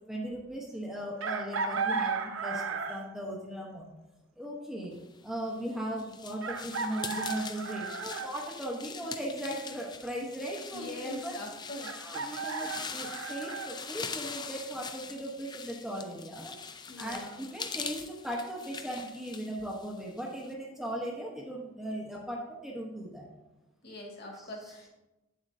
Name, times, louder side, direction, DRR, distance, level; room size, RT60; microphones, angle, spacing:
voice 1, 0.1-3.9 4.4-4.9 5.2-11.3 12.0-16.5 17.0-23.2 24.4-24.7, right 1 dB, ahead, -3 dB, 1.0 m, -38 dB
Chicken rooster, 1.2-3.1 4.8-4.9 6.4-8.3 11.8-13.7, right 5 dB, 65° right, 0.7 m, -34 dB
sound 1, 5.4-20.5, left 5 dB, 20° left, 0.4 m, -43 dB
voice 2, 10.7-12.0 16.9-17.4 23.8-24.9, left 1 dB, 50° left, -1 dB, 1.9 m, -42 dB
9.6 x 7.3 x 2.7 m, 1.0 s
head